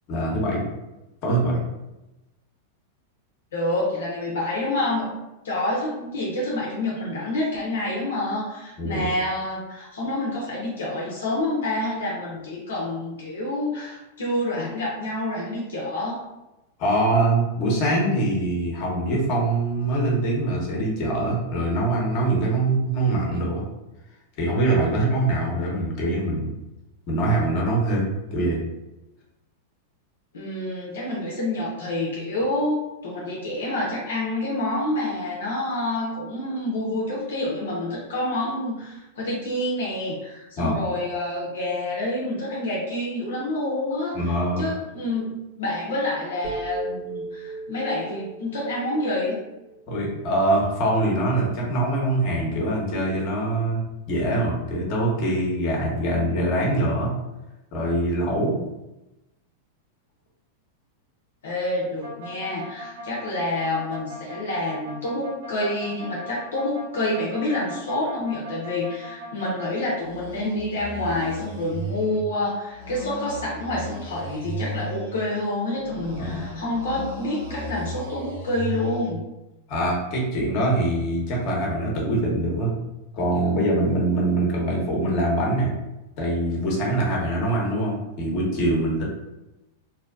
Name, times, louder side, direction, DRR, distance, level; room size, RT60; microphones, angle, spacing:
voice 1, 0.1-0.6 1.2-1.6 8.8-9.1 16.8-23.6 24.4-26.5 27.1-28.6 40.6-40.8 44.1-44.7 49.9-57.2 57.7-58.6 76.2-76.4 79.7-82.7 83.1-85.7 86.2-89.0, right 1 dB, 50° left, -2 dB, 1.0 m, -23 dB
voice 2, 3.5-5.1 5.4-16.2 30.3-49.4 61.4-79.2, left 1 dB, 75° left, -5 dB, 0.6 m, -28 dB
sound 1, 46.4-50.5, right 4 dB, 50° right, 1.1 m, -37 dB
sound 2, 62.0-69.7 70.0-72.2 72.7-75.2 75.7-79.1, right 1 dB, 65° right, 0.7 m, -36 dB
2.6 x 2.2 x 2.5 m, 0.97 s
hypercardioid pair, 105°, 0 cm